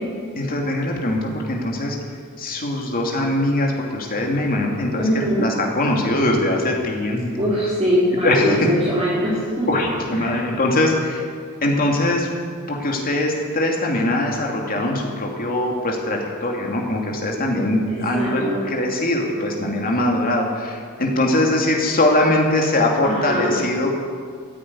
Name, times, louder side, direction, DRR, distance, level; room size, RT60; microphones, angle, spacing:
voice 1, 0.3-2.0 2.4-7.3 8.2-8.6 9.7-11.3 11.6-12.3 12.7-24.0, left 1 dB, 40° left, 0 dB, 2.6 m, -21 dB
voice 2, 5.0-5.5 7.4-9.7 10.1-10.3 17.9-18.6 23.0-23.5, equal, 25° right, -10 dB, 4.1 m, -22 dB
14.0 x 9.8 x 9.7 m, 2.1 s
head